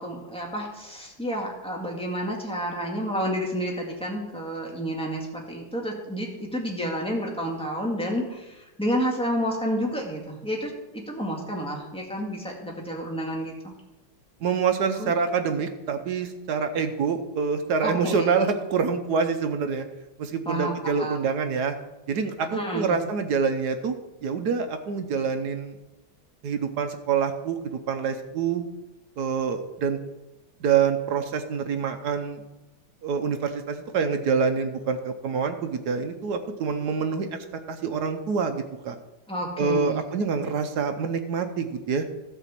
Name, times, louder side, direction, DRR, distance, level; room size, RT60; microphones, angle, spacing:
voice 1, 0.0-13.7 15.0-15.1 17.8-18.3 20.5-21.2 22.5-23.0 39.3-40.0, equal, 5° left, -2 dB, 1.8 m, -30 dB
voice 2, 14.4-19.8 20.2-21.7 22.1-23.9 24.2-25.8 26.4-28.6 29.2-30.0 30.6-32.4 33.0-37.3 37.7-38.9 39.6-42.1, right 5 dB, 65° right, 7 dB, 1.2 m, -26 dB
13.0 x 4.6 x 7.4 m, 1.0 s
omnidirectional pair, 2.1 m